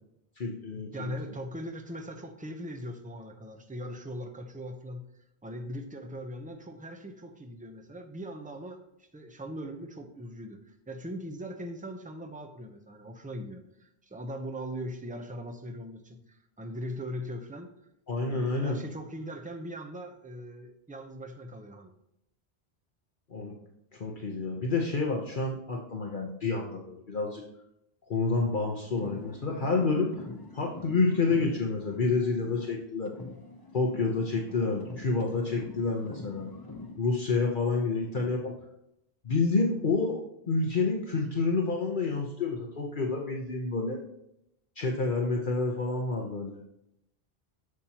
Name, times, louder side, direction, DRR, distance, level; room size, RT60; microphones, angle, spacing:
voice 1, 0.4-1.1 18.1-18.8 23.3-23.5 23.9-27.4 28.1-30.2 30.5-33.1 33.7-36.5 37.0-38.5 39.2-44.0 44.8-46.5, left 3 dB, 55° left, 0 dB, 1.1 m, -29 dB
voice 2, 0.9-5.0 5.4-17.7 18.3-21.9 37.9-38.3, equal, 10° right, 4 dB, 0.7 m, -40 dB
sound 1, 28.9-32.8 33.0-37.0, left 3 dB, 25° left, 0.8 m, -44 dB
11.0 x 7.2 x 3.0 m, 0.80 s
omnidirectional pair, 1.1 m